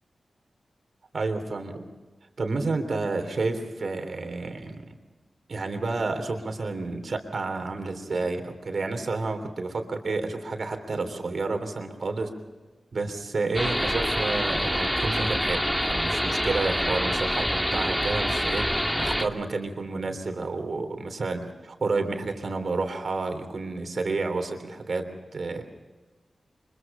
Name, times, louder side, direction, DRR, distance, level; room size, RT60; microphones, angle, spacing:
voice 1, 1.1-1.9 2.4-4.9 5.5-12.3 12.9-18.7 19.0-25.6, right 3 dB, 70° right, 6 dB, 3.2 m, -30 dB
sound 1, 13.5-19.3, equal, 5° left, 1.9 m, -26 dB
25.0 x 22.5 x 5.6 m, 1.2 s
cardioid pair, 45°, 0 cm